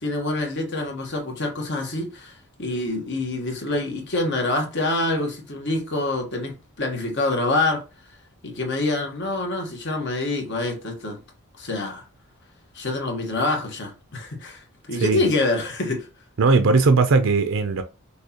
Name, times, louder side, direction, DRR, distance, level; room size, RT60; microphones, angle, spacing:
voice 1, 0.0-2.3 2.6-7.8 8.4-11.2 11.6-12.1 12.7-14.6 14.9-16.1, left 2 dB, 55° left, 1.4 m, -26 dB
voice 2, 14.9-15.2 16.4-17.8, right 4 dB, 60° right, 0.5 m, -18 dB
6.3 x 2.9 x 2.9 m
head